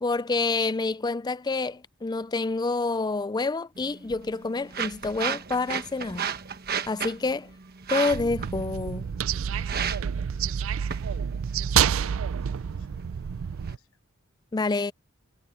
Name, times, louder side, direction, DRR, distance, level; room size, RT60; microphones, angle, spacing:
voice 1, 0.0-6.3 6.9-7.5 7.9-9.1 14.5-14.9, left 3 dB, 20° left, 0.4 m, -28 dB
sound 1, 3.8-13.7, right 7 dB, 45° right, 1.2 m, -35 dB
sound 2, 8.1-13.8, right 8 dB, 65° right, 0.4 m, -28 dB
voice 2, 9.9-10.8 11.2-14.0, left 2 dB, 85° left, 6.5 m, -63 dB
head